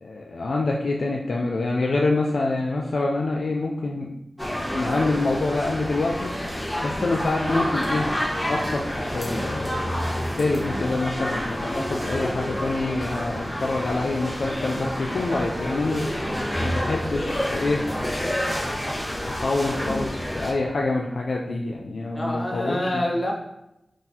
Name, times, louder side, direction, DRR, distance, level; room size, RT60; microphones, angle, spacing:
voice 1, 0.0-4.1 4.7-6.3 6.8-8.1 8.5-16.1 16.6-17.9 19.2-23.0, left 2 dB, 80° left, -1 dB, 0.3 m, -26 dB
sound 1, 4.4-20.5, equal, 10° left, 1.0 m, -28 dB
voice 2, 22.1-23.3, left 1 dB, 50° left, -3 dB, 0.9 m, -26 dB
3.8 x 2.6 x 2.7 m, 0.87 s
cardioid pair, 55°, 0 cm